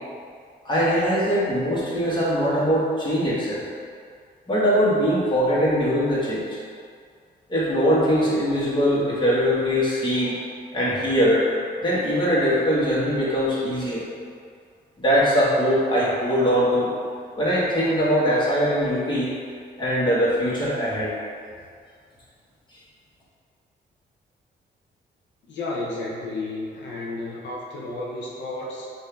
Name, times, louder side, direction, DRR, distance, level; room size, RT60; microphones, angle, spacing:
voice 1, 0.6-3.6 4.5-6.6 7.5-10.4 10.7-11.5 11.8-14.0 15.0-16.9 17.4-19.3 19.8-21.1, equal, 25° left, -8 dB, 1.5 m, -21 dB
voice 2, 25.5-28.9, left 2 dB, 90° left, -4 dB, 0.7 m, -32 dB
5.4 x 2.8 x 3.3 m, 2.2 s
cardioid pair, 105°, 18 cm